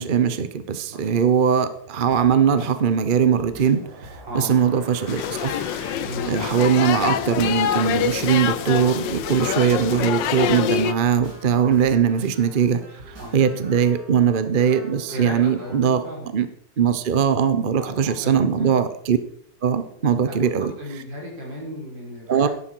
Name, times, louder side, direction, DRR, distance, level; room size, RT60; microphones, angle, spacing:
voice 1, 0.0-5.6 6.3-16.0 16.3-16.5 16.8-19.2 19.6-20.7 22.3-22.5, right 7 dB, 40° right, 11 dB, 0.8 m, -21 dB
voice 2, 0.9-1.3 4.3-4.5 6.0-6.4 9.6-9.8 13.2-13.4 15.1-16.3 17.8-18.8 19.9-20.0 20.3-20.5 20.8-22.5, equal, 80° right, -2 dB, 5.9 m, -35 dB
sound 1, 2.1-15.9, right 1 dB, 60° right, 5.2 m, -43 dB
sound 2, 5.1-10.9, left 9 dB, 80° left, 1.5 m, -25 dB
13.0 x 11.5 x 4.7 m, 0.63 s
omnidirectional pair, 1.9 m